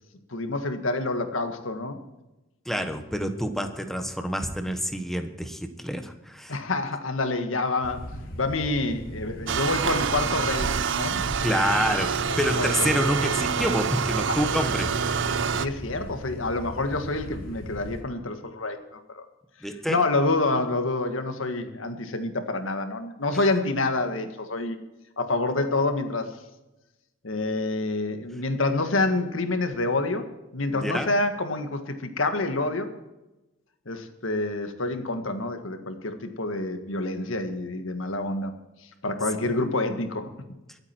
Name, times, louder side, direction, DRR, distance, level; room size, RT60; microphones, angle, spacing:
voice 1, 0.3-2.0 6.5-8.0 8.3-11.3 12.3-13.1 15.5-19.3 19.9-24.8 25.2-26.4 27.2-32.9 33.9-38.5 39.0-40.3, left 2 dB, 85° left, 7 dB, 1.8 m, -27 dB
voice 2, 2.6-6.5 11.4-15.0 19.6-20.0 30.7-31.1, equal, ahead, 7 dB, 1.3 m, -27 dB
sound 1, 7.8-18.0, equal, 50° left, 3.0 m, -39 dB
sound 2, 9.5-15.7, right 6 dB, 65° right, 0.7 m, -26 dB
23.0 x 8.9 x 4.5 m, 1.0 s
head